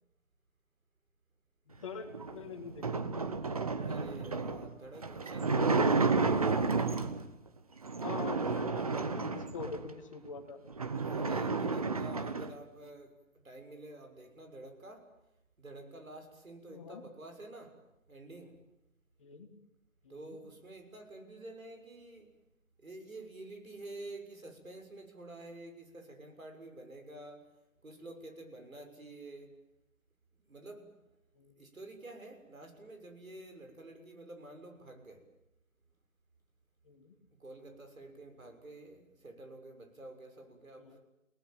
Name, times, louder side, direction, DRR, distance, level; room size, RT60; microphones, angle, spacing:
voice 1, 1.7-3.2 7.9-10.6 16.7-17.0 19.2-19.5 20.0-20.4 31.3-31.6 36.8-37.2 40.8-41.0, left 5 dB, 25° left, 5 dB, 2.1 m, -45 dB
sound 1, 2.1-7.3 7.8-9.9 10.4-10.5 10.7-12.6, right 4 dB, 25° right, 1.0 m, -31 dB
voice 2, 3.8-6.3 11.0-13.2 13.4-15.1 15.6-17.8 18.1-18.6 20.1-22.3 22.8-27.5 27.8-29.6 30.4-30.9 31.6-35.3 37.3-41.0, right 2 dB, 85° right, 5 dB, 6.9 m, -49 dB
29.5 x 18.5 x 9.0 m, 0.90 s
figure-of-eight pair, 165°, 40 cm